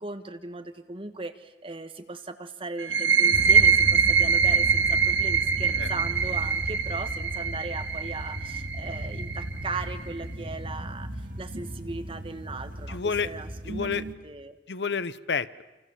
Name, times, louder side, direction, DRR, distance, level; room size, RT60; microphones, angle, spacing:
voice 1, 0.0-11.1 11.4-14.6, right 3 dB, 30° right, 8 dB, 1.5 m, -38 dB
sound 1, 2.8-10.2, right 6 dB, 75° right, 1.3 m, -24 dB
sound 2, 3.3-14.1, equal, 50° right, 2.3 m, -36 dB
voice 2, 12.9-13.3 13.7-14.0 14.7-15.6, left 5 dB, 70° left, 16 dB, 0.8 m, -29 dB
28.5 x 28.0 x 7.2 m, 1.1 s
head